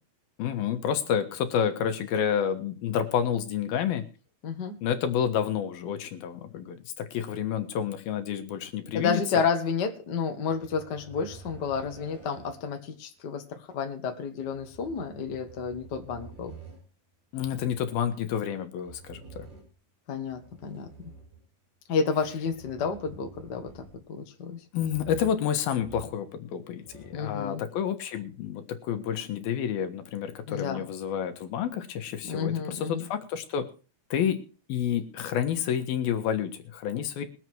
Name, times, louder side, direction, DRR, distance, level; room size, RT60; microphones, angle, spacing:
voice 1, 0.4-4.1 4.8-9.4 17.3-19.5 24.7-33.7 34.1-37.3, left 8 dB, 75° left, 7 dB, 3.1 m, -29 dB
voice 2, 4.4-4.8 8.9-16.5 20.1-20.9 21.9-23.7 24.1-24.6 27.1-27.6 30.5-30.9 32.2-33.1 36.9-37.2, left 5 dB, 45° left, 4 dB, 1.5 m, -31 dB
sound 1, 10.5-12.8 14.4-16.8 17.4-18.0 18.8-19.8 20.3-21.5 22.2-24.2 24.8-25.5 25.8-26.4 26.6-27.3 28.2-28.3, right 5 dB, 80° right, 7.7 m, -49 dB
21.5 x 7.9 x 4.6 m, 0.36 s
omnidirectional pair, 4.4 m